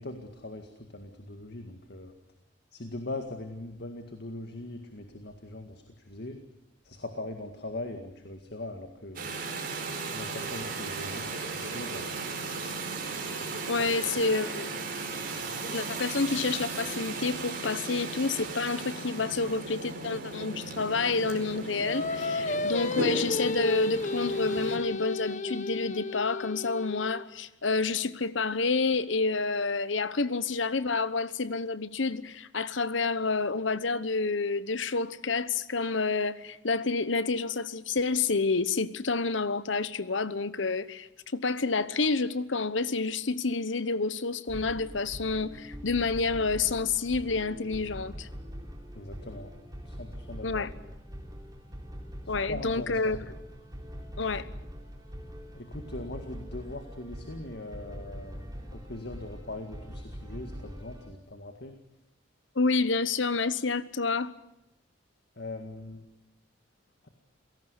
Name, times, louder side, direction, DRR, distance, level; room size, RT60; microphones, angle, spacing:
voice 1, 0.0-2.1 2.7-6.4 6.8-9.3 10.1-12.3 49.0-49.5 49.8-50.7 52.3-53.2 55.5-58.5 58.7-61.8 65.4-66.1, left 2 dB, 55° left, 2.0 m, -41 dB
sound 1, 9.2-24.8, right 3 dB, 50° right, 4.8 m, -36 dB
voice 2, 13.7-14.7 15.7-41.1 41.3-48.3 50.4-50.7 52.3-53.2 54.2-54.5 62.5-64.3, left 4 dB, 75° left, 1.1 m, -29 dB
Singing, 21.9-27.2, left 2 dB, 40° left, 1.1 m, -32 dB
sound 2, 44.5-61.1, equal, 20° right, 3.3 m, -43 dB
27.5 x 18.0 x 8.2 m
head